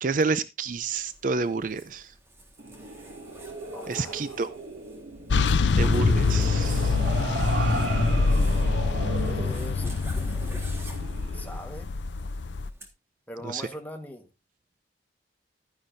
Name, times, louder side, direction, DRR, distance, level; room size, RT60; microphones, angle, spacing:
voice 1, 0.0-2.1 3.9-4.5 5.8-7.0 13.4-13.6, right 4 dB, 45° right, 13 dB, 0.4 m, -29 dB
Zipper (clothing), 0.7-12.9, right 1 dB, 15° right, 1.5 m, -49 dB
sound 1, 2.6-11.5, right 1 dB, 80° right, 2.4 m, -33 dB
voice 2, 3.7-4.4 9.0-9.9 11.3-11.9 13.3-14.3, left 1 dB, 10° left, 3 dB, 1.3 m, -41 dB
sound 2, 5.3-12.7, left 4 dB, 80° left, 0.5 m, -25 dB
12.0 x 9.6 x 2.6 m, 0.25 s
head